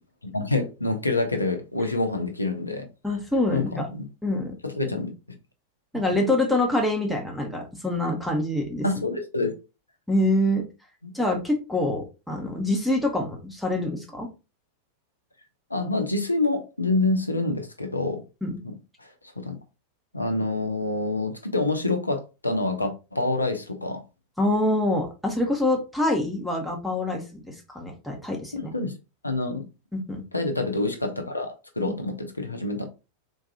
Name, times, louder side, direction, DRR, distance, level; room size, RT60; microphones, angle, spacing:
voice 1, 0.3-2.9 3.5-4.0 4.6-5.1 5.9-6.1 8.8-9.5 11.0-11.1 15.7-18.2 18.6-19.1 19.4-19.6 20.1-24.0 28.5-28.9 29.2-29.7 30.3-32.8, left 2 dB, 85° left, 0.6 m, -27 dB
voice 2, 3.0-3.9 4.2-4.5 5.9-8.9 10.1-10.6 11.1-14.3 18.4-18.5 24.4-28.7 29.9-30.2, left 1 dB, ahead, 0.9 m, -25 dB
3.7 x 2.6 x 2.6 m
figure-of-eight pair, 90°, 0 cm